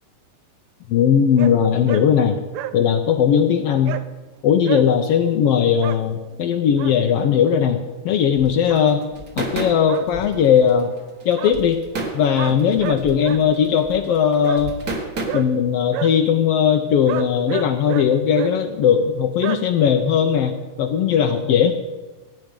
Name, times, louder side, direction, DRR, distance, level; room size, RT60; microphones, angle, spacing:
voice 1, 0.9-2.4 2.7-4.0 4.4-9.0 9.4-10.9 11.2-11.8 12.1-14.7 15.3-21.7, left 8 dB, 80° left, 4 dB, 1.3 m, -18 dB
sound 1, 1.3-1.5 1.9-2.0 2.3-2.7 3.9-4.0 4.6-4.9 5.8-6.0 6.5-6.9 8.7-8.9 9.9-10.1 11.4-11.6 12.4-13.4 14.4-14.6 15.3-15.5 15.9-16.1 17.1-18.1 18.3-18.5 19.4-19.6, right 13 dB, 90° right, 2.2 m, -29 dB
sound 2, 8.3-15.2, right 2 dB, 35° right, 1.5 m, -32 dB
16.5 x 9.1 x 5.2 m, 1.2 s
omnidirectional pair, 3.6 m